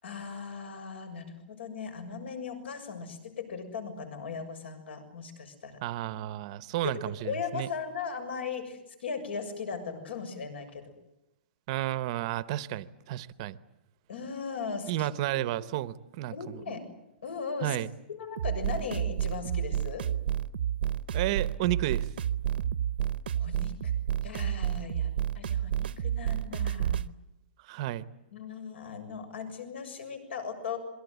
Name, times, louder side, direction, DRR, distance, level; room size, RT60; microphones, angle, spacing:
voice 1, 0.0-5.8 6.8-7.0 7.2-10.8 14.1-15.1 16.3-16.8 17.2-17.8 18.1-20.0 23.4-23.9 24.2-27.0 28.3-30.8, left 5 dB, 75° left, 9 dB, 7.0 m, -38 dB
voice 2, 5.8-7.7 11.7-13.6 14.9-16.8 17.6-17.9 21.1-22.1 27.7-28.1, right 14 dB, 30° right, 16 dB, 0.9 m, -32 dB
sound 1, 18.4-27.1, right 10 dB, 60° right, 0.9 m, -30 dB
27.5 x 22.5 x 8.1 m, 0.87 s
hypercardioid pair, 170°, 6 cm